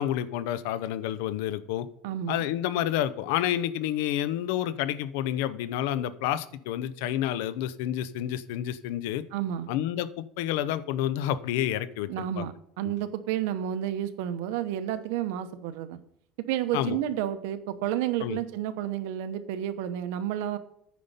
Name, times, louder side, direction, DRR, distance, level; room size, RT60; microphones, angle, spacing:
voice 1, 0.0-1.9 2.3-9.2 9.7-12.5 16.7-17.0 18.2-18.4, left 11 dB, 90° left, 15 dB, 0.6 m, -29 dB
voice 2, 2.0-2.4 9.3-9.7 12.1-16.0 16.5-20.6, right 11 dB, 90° right, 11 dB, 0.9 m, -31 dB
9.4 x 5.2 x 5.5 m, 0.73 s
cardioid pair, 165°, 0 cm